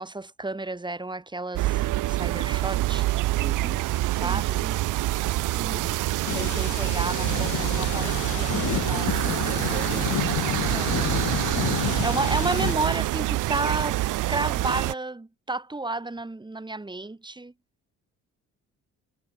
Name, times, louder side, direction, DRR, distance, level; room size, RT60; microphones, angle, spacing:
voice 1, 0.0-3.1 4.2-4.6 5.7-5.9 6.3-9.7 10.7-17.5, right 2 dB, 15° right, 4.6 m, -32 dB
sound 1, 1.5-14.9, right 17 dB, 85° right, 0.9 m, -26 dB
voice 2, 3.3-3.8 4.1-4.8 5.4-5.9 9.4-10.2, right 4 dB, 30° right, 4.0 m, -38 dB
sound 2, 6.3-12.8, left 13 dB, 75° left, 3.0 m, -31 dB
sound 3, 7.6-12.9, left 7 dB, 50° left, 5.8 m, -41 dB
cardioid pair, 90°, 30 cm